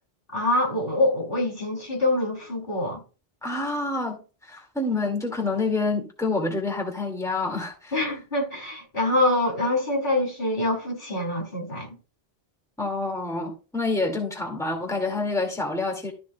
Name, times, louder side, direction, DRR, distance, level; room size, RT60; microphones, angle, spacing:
voice 1, 0.3-3.0 7.9-12.0, left 1 dB, 60° left, 3.3 m, -25 dB
voice 2, 3.4-4.2 4.5-8.0 12.8-16.1, left 3 dB, 5° left, 2.0 m, -27 dB
13.5 x 6.2 x 2.2 m
omnidirectional pair, 1.0 m